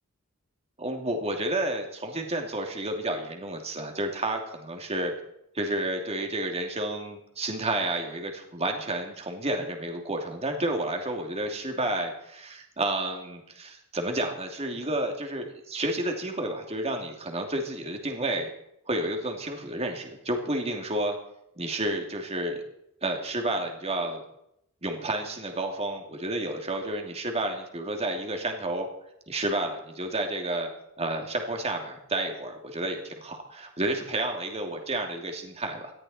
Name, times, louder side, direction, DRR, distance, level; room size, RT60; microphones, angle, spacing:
voice 1, 0.8-5.1 5.5-18.5 18.9-21.2 21.6-22.6 23.0-24.2 24.8-28.9 29.3-30.7 31.0-35.9, right 1 dB, 30° right, 3 dB, 2.7 m, -30 dB
19.0 x 14.0 x 4.4 m, 0.77 s
head